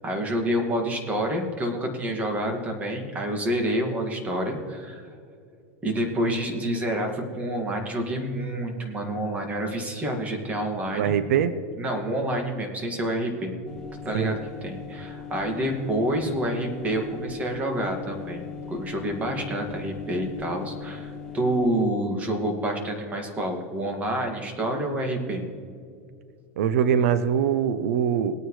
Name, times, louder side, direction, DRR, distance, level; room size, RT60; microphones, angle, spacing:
voice 1, 0.0-5.0 5.8-11.1 11.8-13.5 14.1-25.4, right 1 dB, 20° right, 2 dB, 2.0 m, -28 dB
voice 2, 10.9-11.5 14.1-14.4 26.6-28.3, right 8 dB, 85° right, 12 dB, 0.7 m, -23 dB
sound 1, 13.6-21.8, left 6 dB, 5° left, 1.7 m, -39 dB
20.5 x 9.2 x 3.2 m, 2.3 s
supercardioid pair, 150°, 8 cm